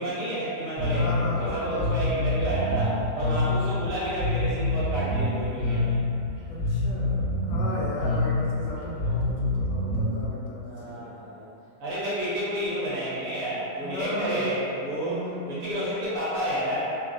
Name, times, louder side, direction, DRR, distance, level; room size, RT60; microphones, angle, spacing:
voice 1, 0.0-6.0 10.7-11.5 11.8-17.0, right 1 dB, 65° right, -9 dB, 0.9 m, -30 dB
Bass guitar, 0.8-10.2, left 2 dB, 10° left, 0.6 m, -27 dB
voice 2, 1.0-2.1 6.5-11.1 13.8-14.5 15.0-15.7, left 1 dB, 80° left, -5 dB, 1.2 m, -35 dB
3.0 x 2.4 x 2.4 m, 2.7 s
omnidirectional pair, 1.9 m